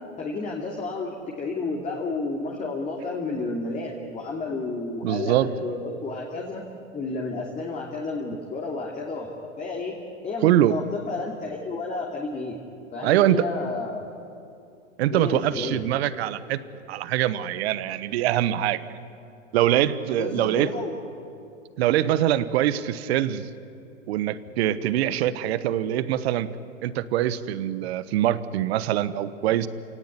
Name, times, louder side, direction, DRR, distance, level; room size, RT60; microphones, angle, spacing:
voice 1, 0.2-6.6 6.9-10.0 10.2-12.6 12.9-14.1 15.1-15.8 20.1-20.9, left 3 dB, 20° left, -1 dB, 2.8 m, -31 dB
voice 2, 5.0-5.5 10.4-10.8 13.0-13.4 15.0-16.6 16.9-18.8 19.5-20.7 21.8-23.5 24.1-26.5 26.8-29.7, right 12 dB, 50° right, 15 dB, 1.3 m, -23 dB
28.5 x 18.0 x 9.8 m, 2.7 s
hypercardioid pair, 120°, 39 cm